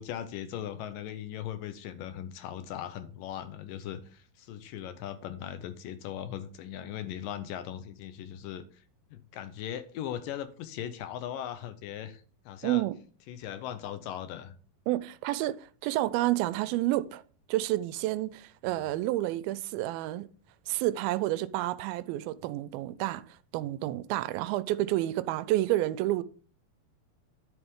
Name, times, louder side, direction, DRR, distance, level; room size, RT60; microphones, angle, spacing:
voice 1, 0.0-8.8 9.1-12.9 13.3-14.5 18.7-18.9, left 10 dB, 75° left, 2.1 m, -39 dB
voice 2, 12.6-13.0 14.9-17.2 17.5-20.3 20.7-26.2, right 15 dB, 85° right, 2.4 m, -30 dB
11.0 x 7.0 x 3.6 m
omnidirectional pair, 4.3 m